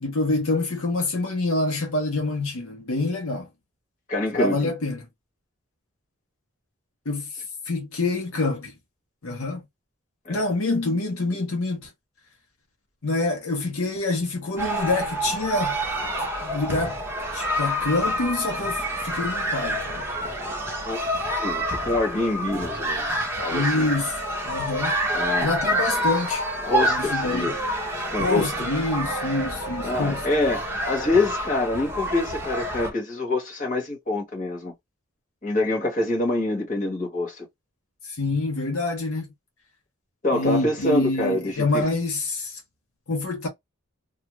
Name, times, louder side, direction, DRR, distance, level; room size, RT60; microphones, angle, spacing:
voice 1, 0.0-3.5 4.3-5.1 7.1-7.3 7.7-8.7 9.2-9.6 10.3-11.9 13.0-15.8 16.2-17.0 17.3-20.1 23.5-24.9 25.4-26.4 26.9-27.5 28.2-30.2 38.2-39.3 40.3-42.6 43.1-43.5, left 2 dB, 80° left, 1.0 m, -26 dB
voice 2, 4.1-4.7 10.2-10.4 20.8-21.0 21.2-23.9 25.1-25.5 26.6-27.6 28.1-28.5 29.8-34.7 35.4-37.5 40.2-41.9, left 2 dB, 35° left, 1.4 m, -26 dB
sound 1, 14.6-32.9, equal, 10° right, 0.7 m, -28 dB
2.5 x 2.4 x 3.0 m
head